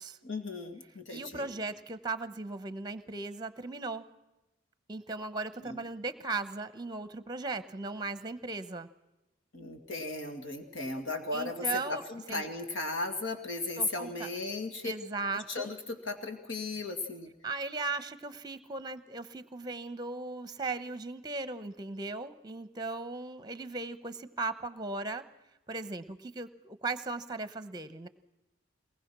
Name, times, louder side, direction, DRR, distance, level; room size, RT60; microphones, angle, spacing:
voice 1, 0.2-1.5 5.6-5.8 9.5-14.9 15.5-17.3, left 3 dB, 75° left, 6 dB, 2.3 m, -36 dB
voice 2, 1.1-4.1 4.9-8.9 11.3-12.0 12.3-12.4 13.8-14.3 14.8-15.7 17.4-25.2 25.7-28.1, right 3 dB, 20° right, 13 dB, 0.9 m, -37 dB
22.5 x 19.5 x 6.1 m, 0.96 s
head